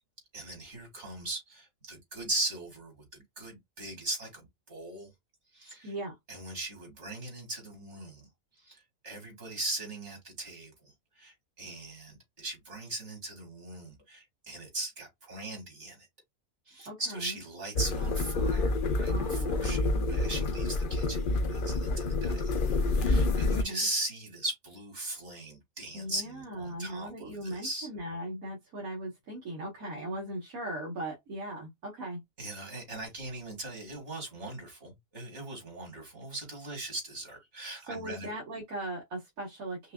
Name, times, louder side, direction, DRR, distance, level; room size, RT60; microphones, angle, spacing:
voice 1, 0.3-5.1 5.5-5.9 6.3-8.3 8.6-16.1 16.7-22.6 23.0-27.9 32.4-38.3, right 2 dB, 55° right, 2.4 m, -39 dB
voice 2, 5.8-6.2 16.9-17.4 19.1-20.5 23.4-23.9 25.9-32.2 37.8-39.9, right 1 dB, 80° right, 1.8 m, -39 dB
sound 1, 17.7-23.6, left 2 dB, 55° left, 0.6 m, -28 dB
5.6 x 2.3 x 2.3 m
omnidirectional pair, 1.5 m